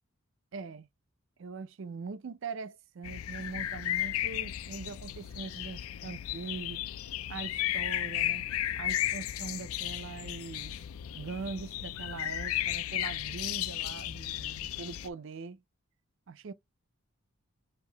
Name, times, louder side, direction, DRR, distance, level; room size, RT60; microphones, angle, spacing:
voice 1, 0.5-0.9 1.4-6.8 7.3-8.5 8.8-10.8 11.2-15.6 16.3-16.5, right 4 dB, 60° right, 0.4 m, -42 dB
sound 1, 3.0-15.1, left 13 dB, 70° left, 0.4 m, -34 dB
6.7 x 2.7 x 2.2 m
head